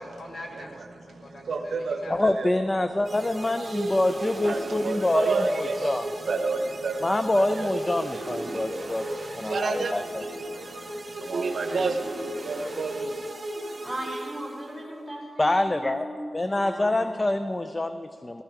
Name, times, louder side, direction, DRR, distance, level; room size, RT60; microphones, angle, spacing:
voice 1, 0.0-2.2, left 1 dB, 50° left, 3 dB, 1.2 m, -43 dB
voice 2, 1.1-2.5 3.6-4.1 4.4-7.9 8.5-8.6 9.1-10.0 10.2-13.3, right 4 dB, 70° right, 6 dB, 0.8 m, -31 dB
voice 3, 2.1-6.1 7.0-9.1 9.3-10.2 15.4-16.1 16.3-18.4, left 2 dB, 25° left, 9 dB, 0.4 m, -26 dB
sound 1, 3.0-14.9, right 1 dB, 30° right, 1.2 m, -35 dB
voice 4, 13.8-16.1 16.5-17.3, right 1 dB, 5° left, -5 dB, 3.5 m, -38 dB
12.5 x 11.5 x 4.6 m, 2.5 s
wide cardioid pair, 85°, 0 cm